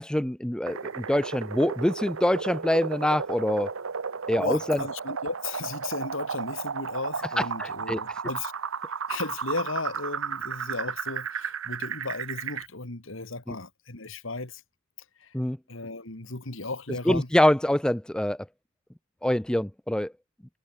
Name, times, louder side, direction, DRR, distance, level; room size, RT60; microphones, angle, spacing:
voice 1, 0.0-3.7 4.3-4.8 7.4-8.0 13.5-13.6 15.3-15.6 17.1-18.4 19.2-20.1, left 1 dB, 5° left, 0.4 m, -25 dB
sound 1, 0.7-12.7, right 6 dB, 85° right, 0.9 m, -34 dB
voice 2, 4.4-8.5 9.1-14.6 15.2-15.3 15.7-17.3, left 3 dB, 70° left, 2.4 m, -35 dB
head